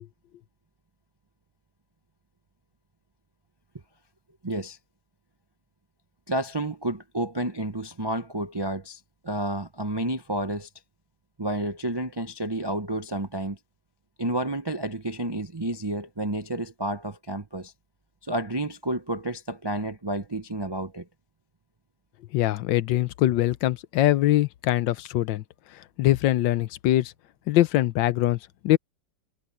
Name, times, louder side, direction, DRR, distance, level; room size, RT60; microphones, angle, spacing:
voice 1, 4.4-4.8 6.3-10.7 11.4-13.6 14.2-17.7 18.2-21.1, right 1 dB, 40° right, 0.3 m, -30 dB
voice 2, 22.3-25.4 26.0-27.1 27.5-28.4 28.6-28.8, left 14 dB, 90° left, 1.4 m, -22 dB
omnidirectional pair, 2.0 m